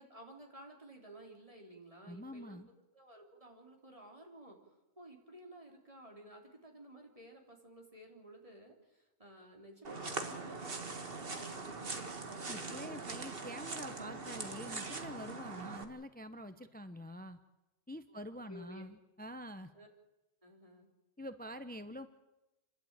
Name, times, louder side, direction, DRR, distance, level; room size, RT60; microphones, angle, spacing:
voice 1, 0.0-4.6 5.0-13.2 18.1-18.8 19.7-19.9 20.4-20.9, right 1 dB, 30° right, 1 dB, 3.7 m, -55 dB
voice 2, 2.0-2.7 12.5-17.4 17.9-19.7 21.2-22.1, equal, 10° left, 10 dB, 0.8 m, -46 dB
sound 1, 9.8-15.8, right 3 dB, 60° right, 1.9 m, -42 dB
29.5 x 12.0 x 8.9 m, 1.0 s
omnidirectional pair, 1.1 m